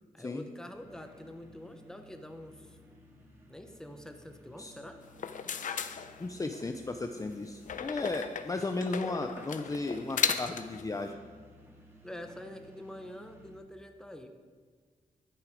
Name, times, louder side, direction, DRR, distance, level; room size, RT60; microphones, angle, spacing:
voice 1, 0.1-2.8 3.5-5.0 12.0-14.3, left 1 dB, 5° left, 5 dB, 1.0 m, -46 dB
sound 1, 0.7-13.6, left 1 dB, 15° right, 2.3 m, -56 dB
sound 2, 5.1-6.7 7.7-10.8, left 7 dB, 65° left, 0.6 m, -35 dB
voice 2, 6.2-11.2, left 2 dB, 25° left, 5 dB, 0.6 m, -35 dB
12.0 x 8.1 x 5.1 m, 1.5 s
wide cardioid pair, 100°, 14 cm